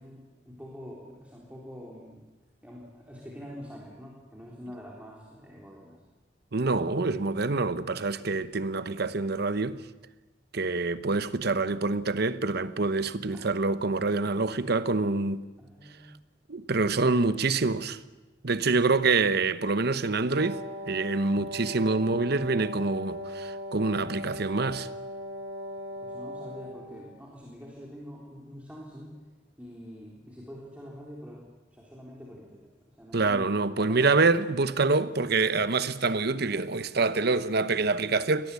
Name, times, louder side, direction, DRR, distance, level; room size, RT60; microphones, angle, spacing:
voice 1, 0.0-2.2 2.6-6.0 7.0-7.2 13.3-13.5 15.6-16.1 26.0-29.2 29.6-31.4 31.7-34.4, equal, 5° right, 3.7 m, -45 dB
voice 2, 6.5-9.8 10.5-15.4 16.5-18.0 18.4-24.9 33.1-38.5, right 3 dB, 55° right, 0.9 m, -26 dB
Wind instrument woodwind instrument, 20.3-27.1, equal, 90° right, 6.5 m, -39 dB
23.5 x 18.5 x 8.4 m
head